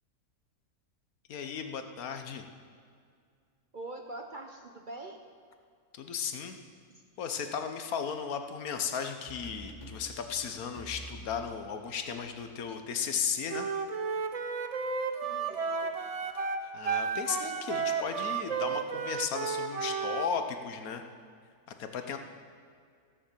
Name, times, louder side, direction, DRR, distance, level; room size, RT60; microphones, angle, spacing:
voice 1, 1.3-2.4 5.9-6.6 7.2-13.7 16.7-21.0 21.8-22.2, left 7 dB, 70° left, 6 dB, 1.3 m, -35 dB
voice 2, 3.7-5.2 15.2-15.9, right 2 dB, 40° right, 3 dB, 0.7 m, -44 dB
sound 1, 9.3-12.7, left 1 dB, 30° left, 1.8 m, -47 dB
Wind instrument woodwind instrument, 13.5-20.3, right 5 dB, 60° right, 0.3 m, -33 dB
16.0 x 6.8 x 7.4 m, 2.1 s
omnidirectional pair, 1.6 m